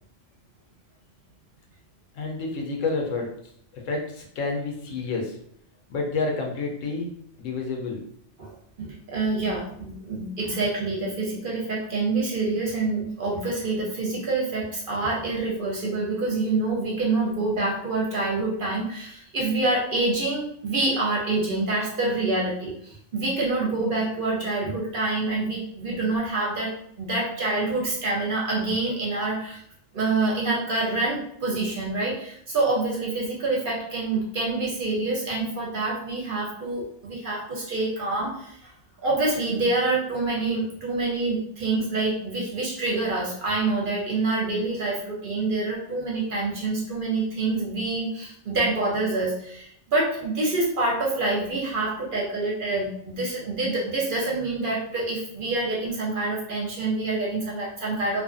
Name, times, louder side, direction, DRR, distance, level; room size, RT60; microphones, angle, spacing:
voice 1, 2.1-3.3 3.7-5.4 5.9-8.0, left 3 dB, 85° left, 0 dB, 1.0 m, -29 dB
voice 2, 8.4-29.6 29.9-38.7 39.0-58.2, right 2 dB, 55° right, -3 dB, 0.6 m, -26 dB
2.5 x 2.4 x 2.4 m, 0.68 s
omnidirectional pair, 1.3 m